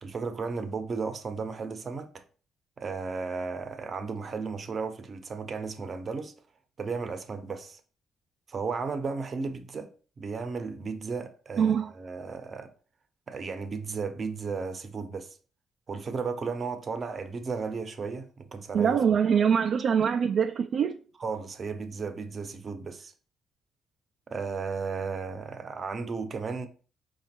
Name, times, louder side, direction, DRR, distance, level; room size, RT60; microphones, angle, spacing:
voice 1, 0.0-2.2 2.8-6.3 6.8-7.8 8.5-9.9 10.2-12.7 13.3-15.4 15.9-19.0 21.2-23.1 24.3-26.7, right 4 dB, 40° right, 0.7 m, -34 dB
voice 2, 11.6-11.9 18.7-21.0, right 7 dB, 60° right, 0.3 m, -24 dB
5.0 x 2.4 x 4.4 m
cardioid pair, 90°, 0 cm